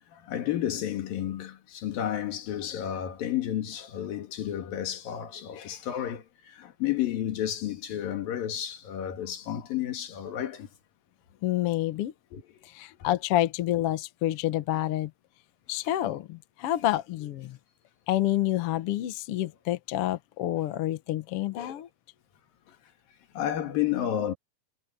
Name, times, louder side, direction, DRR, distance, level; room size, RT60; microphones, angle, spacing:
voice 1, 0.1-10.7 12.3-12.4 13.0-13.1 21.5-21.8 22.7-22.8 23.4-24.3, left 11 dB, 85° left, 3.7 m, -31 dB
voice 2, 11.4-12.1 12.6-15.1 15.7-17.6 18.1-21.9, left 14 dB, 65° left, 1.5 m, -28 dB
omnidirectional pair, 3.9 m